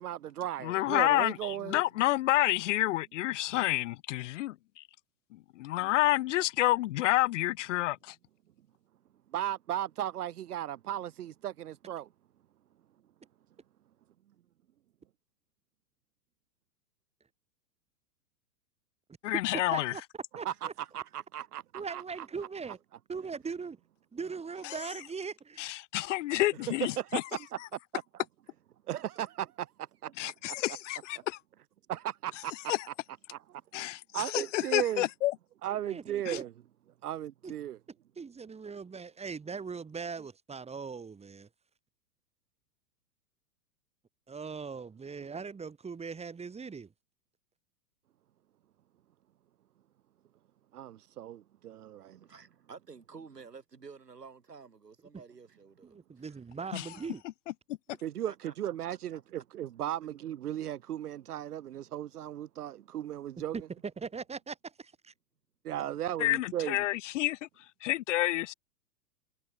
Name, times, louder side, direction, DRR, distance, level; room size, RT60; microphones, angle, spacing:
voice 1, 0.0-1.8 9.3-12.1 20.4-21.6 21.9-22.0 27.0-27.6 27.9-28.2 28.9-29.7 30.0-30.6 31.9-32.5 33.3-33.6 34.1-35.1 35.6-36.5 37.0-37.8 50.7-52.2 58.0-63.6 65.6-66.8, right 12 dB, 70° right, 1.1 m, -36 dB
voice 2, 0.6-4.8 5.6-8.1 19.2-19.9 24.6-24.7 25.6-27.2 30.2-31.4 32.7-32.8 33.7-35.3 36.3-36.4 56.7-56.8 66.2-67.5 67.8-68.5, left 16 dB, 50° left, 0.8 m, -29 dB
voice 3, 19.5-20.0 20.4-20.7 21.7-22.8 23.1-23.8 24.1-25.7 35.8-36.4 37.4-37.5 38.2-41.5 44.3-46.9 55.1-55.2 55.8-57.2 63.5-65.1, right 5 dB, 15° right, 5.4 m, -40 dB
voice 4, 52.1-56.4 56.9-57.0 58.2-58.5 58.9-59.4, right 5 dB, 90° right, 5.1 m, -51 dB
hypercardioid pair, 110°, 47 cm